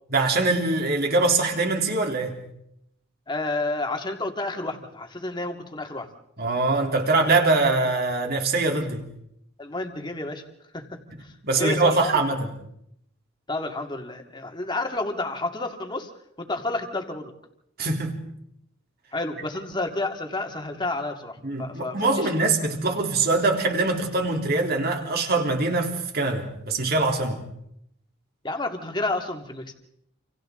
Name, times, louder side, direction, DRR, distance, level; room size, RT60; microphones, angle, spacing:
voice 1, 0.1-2.4 6.4-9.1 11.4-12.5 17.8-18.1 21.4-27.4, right 3 dB, 50° right, 2 dB, 3.5 m, -23 dB
voice 2, 3.3-6.1 9.6-10.4 10.7-10.8 11.2-12.2 13.5-16.1 16.4-17.3 19.1-22.3 28.4-29.7, left 2 dB, 20° left, 4 dB, 2.3 m, -30 dB
29.0 x 28.0 x 3.9 m, 0.76 s
head